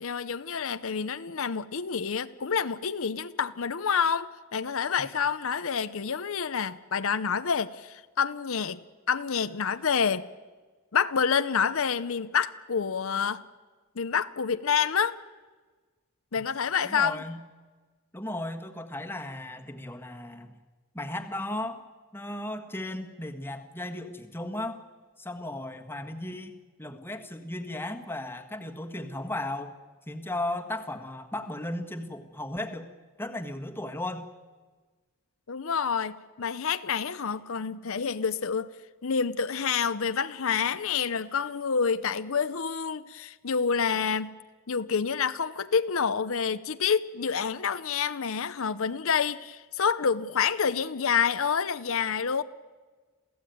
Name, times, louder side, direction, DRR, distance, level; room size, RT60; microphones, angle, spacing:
voice 1, 0.0-8.8 9.1-10.3 10.9-13.4 14.0-15.2 16.3-17.2 35.5-38.7 39.0-44.3 44.7-52.4, left 6 dB, 70° left, 12 dB, 0.7 m, -28 dB
voice 2, 16.8-17.4 18.1-20.5 20.9-21.8 22.1-24.8 25.2-29.8 30.1-32.9 33.2-34.3, left 1 dB, 10° left, 4 dB, 1.6 m, -35 dB
27.5 x 16.0 x 9.3 m, 1.4 s
head